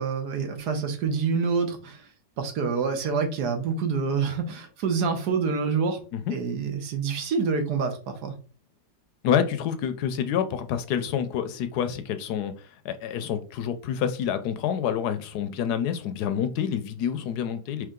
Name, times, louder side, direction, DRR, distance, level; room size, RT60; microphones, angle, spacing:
voice 1, 0.0-2.0 2.4-6.0 6.3-8.3, right 5 dB, 70° right, 1.4 m, -27 dB
voice 2, 9.2-17.9, left 8 dB, 75° left, 1.1 m, -28 dB
4.6 x 3.2 x 3.6 m
omnidirectional pair, 1.8 m